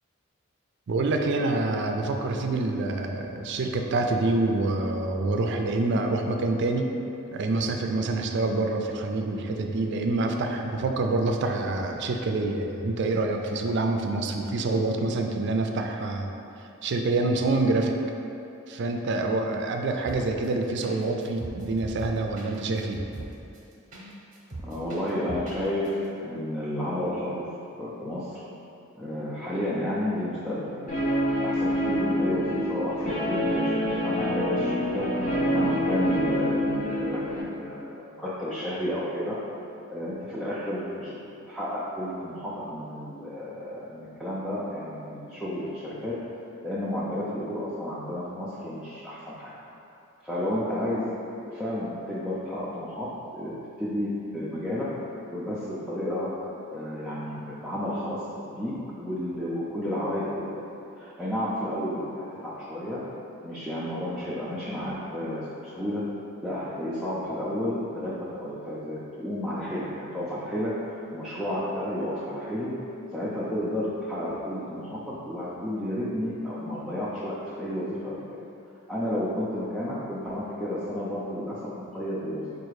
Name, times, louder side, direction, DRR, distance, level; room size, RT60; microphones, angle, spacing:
voice 1, 0.9-6.9 7.3-16.3 16.8-17.9 18.7-23.0, right 2 dB, 60° right, 4 dB, 0.4 m, -26 dB
sound 1, 20.0-20.5 20.8-21.0 21.2-24.1 24.3-25.6 25.8-25.9, right 2 dB, 40° right, 0.8 m, -39 dB
voice 2, 24.6-27.4 27.8-28.4 28.9-30.9 31.4-39.3 39.9-41.1 41.5-46.1 46.6-49.5 50.2-51.1 51.4-53.1 53.3-53.5 53.8-54.9 55.3-56.3 56.7-60.7 61.0-63.0 63.4-66.0 66.4-70.7 71.1-72.7 73.1-75.0 75.3-78.2 78.9-82.5, left 1 dB, ahead, -10 dB, 0.5 m, -31 dB
Guitar, 30.9-37.4, equal, 40° left, 0.7 m, -26 dB
4.6 x 2.4 x 4.7 m, 2.8 s
head